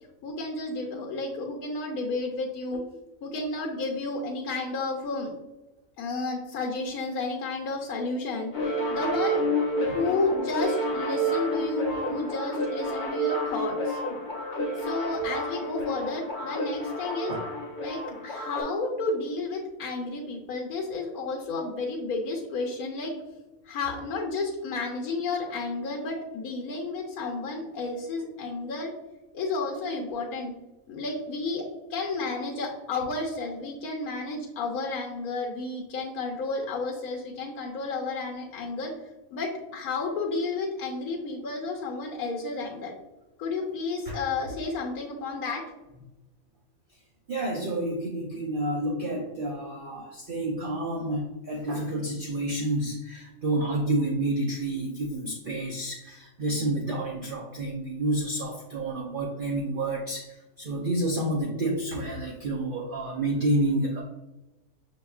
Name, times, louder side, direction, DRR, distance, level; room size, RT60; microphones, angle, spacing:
voice 1, 0.2-2.8 3.2-5.3 6.0-8.5 8.9-9.5 9.8-14.0 14.8-17.4 17.8-23.1 23.6-28.9 29.3-30.5 30.9-38.9 39.3-42.9 43.4-45.6, left 3 dB, 90° left, 0 dB, 1.2 m, -31 dB
sound 1, 8.5-18.6, equal, 40° left, 0.7 m, -30 dB
voice 2, 47.3-64.0, right 1 dB, 70° right, -1 dB, 0.5 m, -29 dB
5.8 x 2.8 x 2.3 m, 1.0 s
omnidirectional pair, 1.5 m